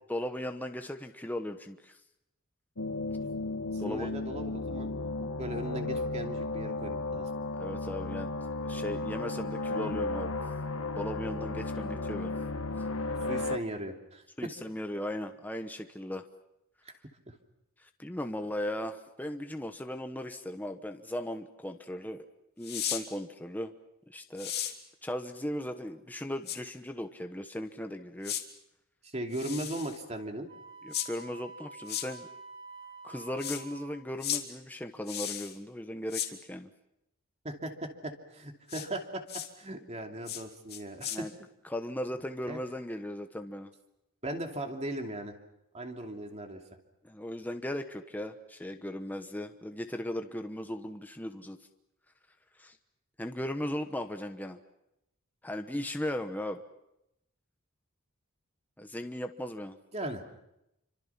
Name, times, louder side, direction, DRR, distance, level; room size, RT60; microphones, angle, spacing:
voice 1, 0.1-2.0 3.8-4.1 7.6-8.3 8.6-10.4 10.9-12.4 14.4-16.2 17.8-22.3 22.6-23.7 24.1-24.5 25.0-28.3 30.8-32.3 33.0-36.7 41.1-41.3 41.6-43.7 47.0-51.6 52.6-52.8 53.2-54.6 55.4-56.6 58.8-59.8, left 1 dB, 10° left, 6 dB, 1.1 m, -37 dB
sound 1, 2.8-13.6, left 2 dB, 75° left, 1.4 m, -34 dB
voice 2, 3.7-4.9 5.4-7.3 13.3-14.5 16.8-16.9 17.3-17.4 29.0-30.5 37.4-41.3 42.5-42.6 44.2-45.3 45.7-46.6 59.9-60.2, right 1 dB, 30° right, 4 dB, 2.8 m, -38 dB
sound 2, 22.6-23.0 24.4-24.7 26.5-26.6 28.2-28.4 29.3-30.0 30.9-31.1 31.9-32.1 33.4-33.6 34.2-34.4 35.1-35.5 36.1-36.3 38.7-38.9 39.3-39.5 40.3-40.4 40.7-41.2, left 11 dB, 50° left, 2.6 m, -35 dB
Wind instrument woodwind instrument, 30.5-34.0, right 3 dB, 50° right, 2.9 m, -48 dB
28.5 x 25.5 x 5.9 m, 0.84 s
head